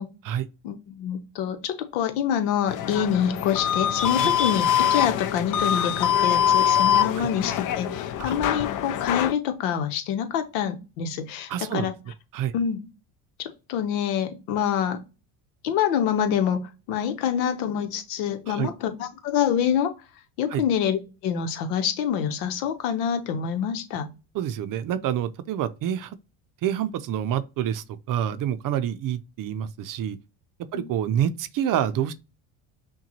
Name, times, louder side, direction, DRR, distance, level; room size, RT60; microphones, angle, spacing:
voice 1, 0.6-11.9 12.5-12.8 13.4-15.0 15.6-19.9 20.4-24.1 30.7-30.9, left 8 dB, 85° left, 0.9 m, -26 dB
sound 1, 2.7-9.3, left 9 dB, 45° left, 0.5 m, -24 dB
voice 2, 11.5-11.9 12.3-12.5 18.5-18.7 20.5-20.6 24.3-26.2 26.6-30.2 30.7-32.1, right 10 dB, 50° right, 0.5 m, -27 dB
5.8 x 2.3 x 2.8 m
supercardioid pair, 95°, 43 cm